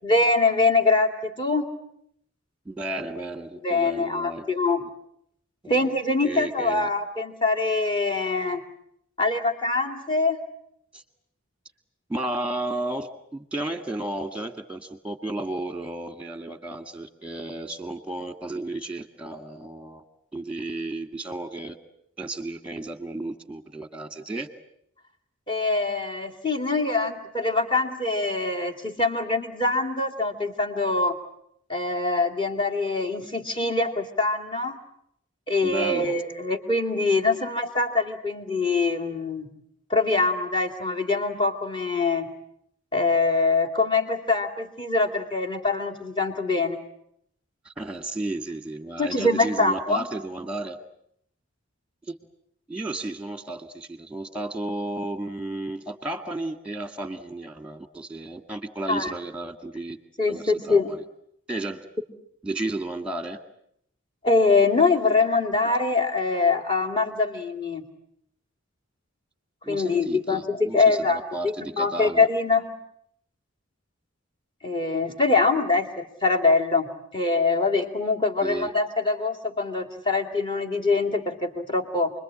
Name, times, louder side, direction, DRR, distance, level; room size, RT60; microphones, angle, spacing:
voice 1, 0.0-1.6 3.6-4.8 5.7-8.6 9.2-10.4 25.5-31.1 31.7-34.8 35.5-39.5 39.9-42.3 42.9-46.8 49.0-50.0 58.9-59.1 60.2-60.9 64.2-67.8 69.7-71.2 71.8-72.7 74.6-82.1, left 3 dB, 25° left, 5 dB, 2.4 m, -24 dB
voice 2, 2.7-4.4 4.8-4.9 5.6-6.0 6.2-6.9 10.9-11.0 12.1-20.0 20.3-21.8 22.2-24.5 35.6-36.2 47.7-50.8 52.0-52.1 52.7-60.0 60.3-61.0 61.5-61.9 62.4-63.4 69.6-72.3 78.4-78.7, right 2 dB, 5° right, 8 dB, 1.9 m, -33 dB
29.0 x 22.0 x 8.7 m, 0.72 s
head